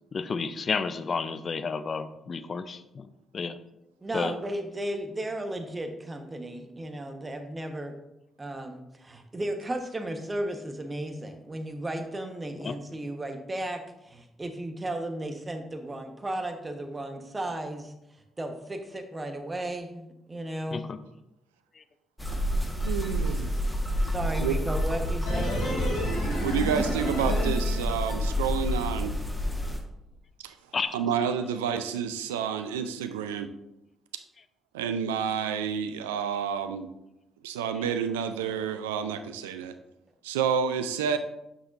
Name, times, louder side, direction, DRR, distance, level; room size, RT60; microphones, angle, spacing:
voice 1, 0.1-3.6 4.1-4.4 12.6-12.7 20.7-21.0 21.8-21.9 30.7-31.0, left 5 dB, 45° left, 12 dB, 0.5 m, -31 dB
voice 2, 4.0-7.9 8.4-17.9 18.4-20.9 24.1-25.7, right 1 dB, 25° right, 6 dB, 1.1 m, -35 dB
sound 1, 22.2-29.8, equal, 10° left, 1.3 m, -29 dB
voice 3, 22.8-23.5 24.4-24.5 26.4-29.1 30.4-30.5 30.9-33.5 34.7-36.9 37.4-39.7 40.2-41.2, right 7 dB, 85° right, 10 dB, 0.3 m, -29 dB
sound 2, 25.3-28.4 28.7-28.8, equal, 85° left, 2.4 m, -31 dB
8.1 x 5.9 x 2.5 m, 0.90 s
hypercardioid pair, 45°, 0 cm